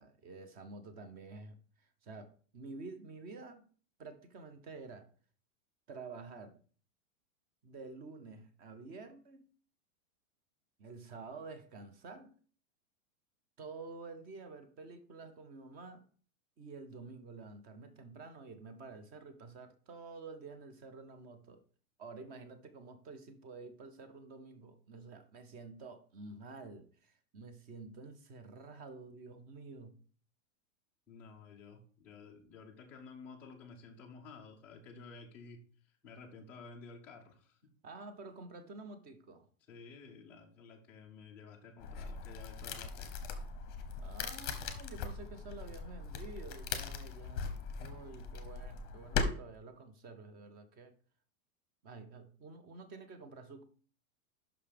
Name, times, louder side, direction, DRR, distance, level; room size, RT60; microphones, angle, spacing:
voice 1, 0.0-3.7 4.0-5.1 5.9-6.6 7.6-9.4 10.8-12.4 13.6-16.0 16.6-21.6 22.0-29.9 37.8-39.5 44.0-50.9 51.8-53.6, right 3 dB, 20° right, 10 dB, 0.7 m, -50 dB
voice 2, 31.1-37.7 39.7-43.2, left 4 dB, 5° left, -5 dB, 0.3 m, -53 dB
sound 1, 41.8-49.2, left 5 dB, 25° left, 0.8 m, -40 dB
5.9 x 5.4 x 5.0 m, 0.43 s
supercardioid pair, 160°, 41 cm